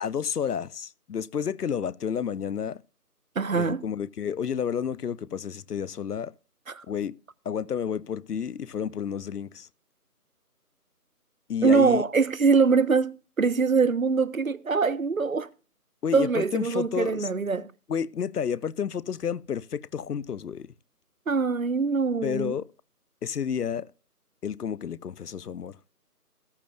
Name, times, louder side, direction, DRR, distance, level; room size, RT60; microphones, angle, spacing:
voice 1, 0.0-2.8 3.5-6.3 6.9-7.1 7.5-9.7 11.5-12.0 16.0-17.3 17.9-20.7 22.2-22.7 23.2-23.9 24.4-25.8, left 7 dB, 75° left, 0.5 m, -30 dB
voice 2, 3.4-3.8 6.7-6.8 11.6-13.1 13.4-15.5 16.1-17.7 21.3-22.5, right 5 dB, 60° right, 0.5 m, -23 dB
14.0 x 11.5 x 2.2 m
figure-of-eight pair, 175°, 47 cm